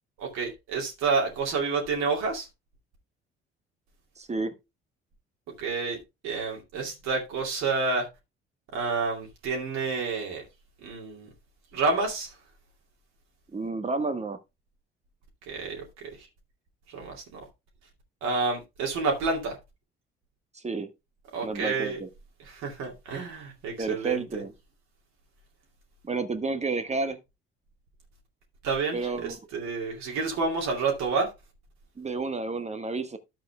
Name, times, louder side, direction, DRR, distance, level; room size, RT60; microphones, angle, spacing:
voice 1, 0.2-2.5 5.6-6.0 6.2-8.1 8.7-10.4 10.8-11.3 11.7-12.3 15.5-15.8 16.2-16.3 16.9-17.4 18.2-19.6 21.3-22.0 22.4-24.4 28.6-31.3, right 4 dB, 55° right, 2.5 m, -29 dB
voice 2, 4.2-4.5 13.5-14.4 20.5-20.9 21.4-22.1 23.8-24.5 26.0-27.2 28.9-29.4 32.0-33.2, right 3 dB, 20° right, 1.3 m, -30 dB
13.0 x 7.5 x 2.2 m
figure-of-eight pair, 50°, 32 cm